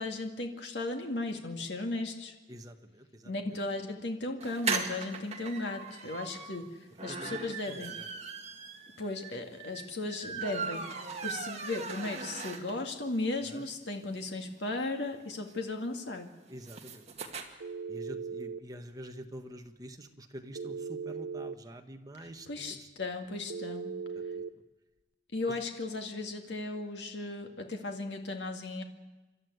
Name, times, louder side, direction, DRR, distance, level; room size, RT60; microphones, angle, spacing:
voice 1, 0.0-2.3 3.3-6.7 7.0-8.0 9.0-16.3 22.2-24.0 25.3-28.8, left 2 dB, 70° left, 4 dB, 2.2 m, -36 dB
voice 2, 2.5-3.6 7.1-8.1 13.5-13.6 16.5-17.0 17.9-22.9 24.1-24.4 25.5-25.6, right 1 dB, 20° right, 4 dB, 1.6 m, -47 dB
sound 1, 4.4-13.0 13.4-13.5 13.7-13.8 14.0-17.4, right 4 dB, 35° right, 2.0 m, -39 dB
Telephone, 17.6-18.6 20.5-21.6 23.5-24.5, right 5 dB, 90° right, 0.8 m, -38 dB
28.0 x 12.5 x 9.6 m, 1.2 s
head